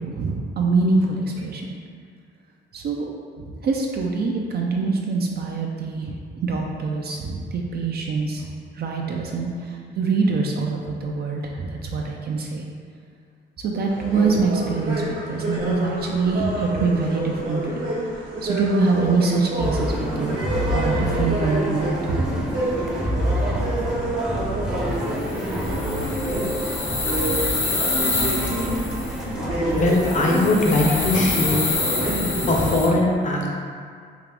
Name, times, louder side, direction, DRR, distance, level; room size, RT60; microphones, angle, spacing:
voice 1, 0.0-1.6 2.7-3.1 3.4-8.5 8.7-12.6 13.6-17.8 18.4-20.4 20.7-22.5, right 4 dB, 55° right, 0 dB, 0.4 m, -24 dB
sound 1, 13.9-32.8, right 1 dB, 75° right, 1.0 m, -29 dB
sound 2, 19.6-32.8, equal, 5° right, 0.6 m, -28 dB
sound 3, 25.2-29.2 29.8-32.9, left 3 dB, 80° left, 0.8 m, -27 dB
voice 2, 29.7-31.7 32.5-33.5, left 2 dB, 40° left, -1 dB, 0.7 m, -20 dB
3.5 x 2.4 x 3.4 m, 2.1 s
cardioid pair, 90°, 20 cm